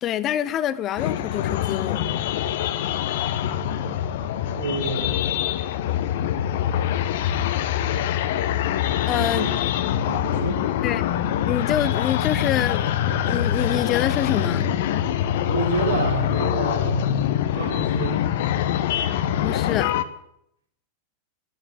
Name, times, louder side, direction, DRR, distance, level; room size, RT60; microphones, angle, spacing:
voice 1, 0.0-2.1 9.1-9.6 10.8-11.0 11.5-12.9 13.2-14.7 19.4-19.9, left 11 dB, 30° left, 0.7 m, -26 dB
sound 1, 1.0-20.0, left 10 dB, 55° left, 1.0 m, -24 dB
voice 2, 4.6-5.2 5.9-6.1 9.1-9.5 10.0-10.7 15.5-17.1 17.5-18.2, right 3 dB, 70° right, 4.2 m, -29 dB
12.0 x 11.5 x 8.6 m
figure-of-eight pair, 90°, 0 cm